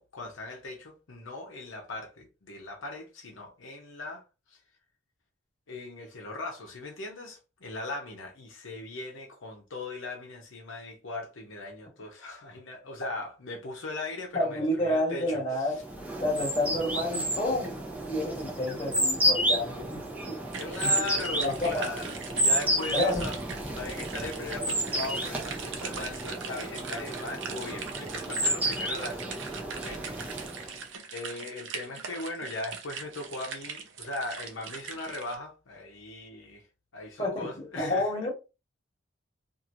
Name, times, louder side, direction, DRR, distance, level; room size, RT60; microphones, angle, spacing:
voice 1, 0.0-4.6 5.7-15.7 20.6-23.4 23.7-29.4 29.7-30.0 30.5-30.8 31.1-36.7 36.9-38.1, left 2 dB, 75° left, 0.8 m, -39 dB
voice 2, 14.3-15.8 16.2-17.8 18.0-20.4 20.8-20.9 21.4-21.8 22.9-23.2 37.2-38.3, left 1 dB, 30° left, 1.2 m, -29 dB
sound 1, 15.8-30.8, right 1 dB, 10° right, 0.6 m, -31 dB
sound 2, 20.5-35.4, right 5 dB, 65° right, 0.6 m, -41 dB
2.9 x 2.6 x 2.5 m
head